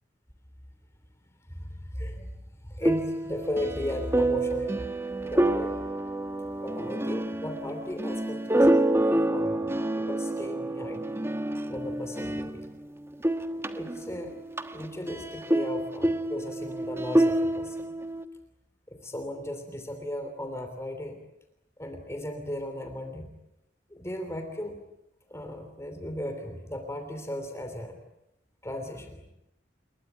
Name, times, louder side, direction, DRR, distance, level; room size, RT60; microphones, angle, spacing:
voice 1, 1.5-2.3 2.6-5.0 5.2-5.9 6.6-9.0 9.3-11.0 11.7-12.7 13.7-14.3 14.7-17.9 18.9-21.2 21.8-23.3 23.9-24.8 25.3-28.0 28.6-29.2, left 1 dB, 15° left, 6 dB, 3.0 m, -36 dB
sound 1, 2.8-12.8 13.1-18.2, right 1 dB, 15° right, 1.3 m, -28 dB
29.5 x 22.0 x 8.9 m, 0.86 s
head